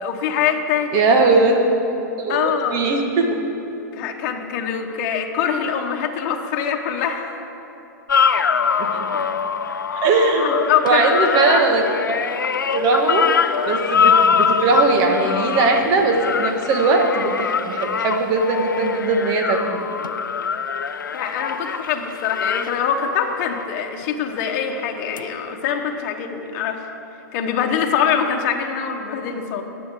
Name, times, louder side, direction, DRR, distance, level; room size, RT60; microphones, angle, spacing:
voice 1, 0.0-1.0 2.3-2.8 3.9-7.3 10.5-11.4 21.1-26.8 27.3-29.6, left 8 dB, 50° left, 3 dB, 1.1 m, -23 dB
voice 2, 0.9-1.6 2.2-3.3 8.8-9.1 9.9-10.6 10.8-11.9 12.7-19.8, right 3 dB, 40° right, 3 dB, 1.7 m, -19 dB
sound 1, 8.1-23.7 25.2-25.3, left 6 dB, 90° left, 0.4 m, -23 dB
19.5 x 7.8 x 3.7 m, 3.0 s
hypercardioid pair, 110°, 10 cm